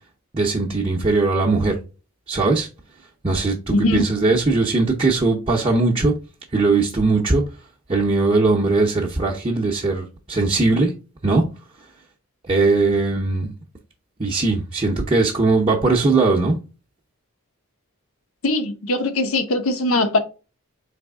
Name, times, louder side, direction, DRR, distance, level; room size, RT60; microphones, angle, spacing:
voice 1, 0.3-1.8 2.3-2.7 3.2-6.2 6.5-7.5 7.9-10.9 11.2-11.5 12.4-13.5 14.2-16.6, right 3 dB, 25° right, 0.6 m, -19 dB
voice 2, 3.7-4.0 18.4-20.2, left 2 dB, 65° left, 0.7 m, -20 dB
4.1 x 3.0 x 3.5 m
head